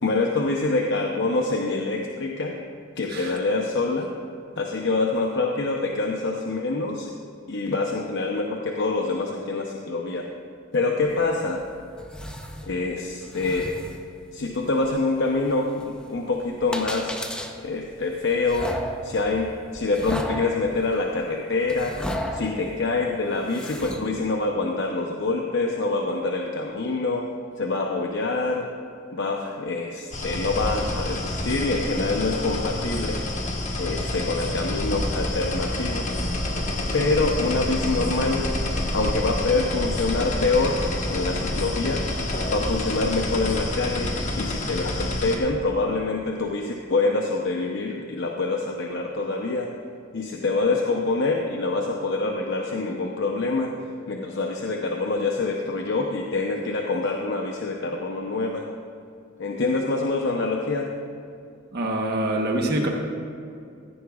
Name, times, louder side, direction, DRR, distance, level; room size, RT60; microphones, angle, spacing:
voice 1, 0.0-2.6 3.0-4.1 4.6-7.1 7.5-10.3 10.7-11.6 12.6-13.7 14.3-17.2 17.6-22.0 22.3-27.3 27.6-28.7 29.1-33.2 33.8-36.1 36.9-38.5 38.9-42.1 42.5-49.7 50.1-53.7 54.1-58.6 59.4-60.9, left 3 dB, 60° left, 1 dB, 0.8 m, -25 dB
sound 1, 11.1-24.2, equal, 5° left, 0.7 m, -36 dB
sound 2, 30.1-45.4, left 1 dB, 35° left, 1.3 m, -28 dB
voice 2, 61.7-62.9, right 1 dB, 55° right, 1 dB, 1.1 m, -25 dB
16.5 x 14.5 x 2.4 m, 2.4 s
head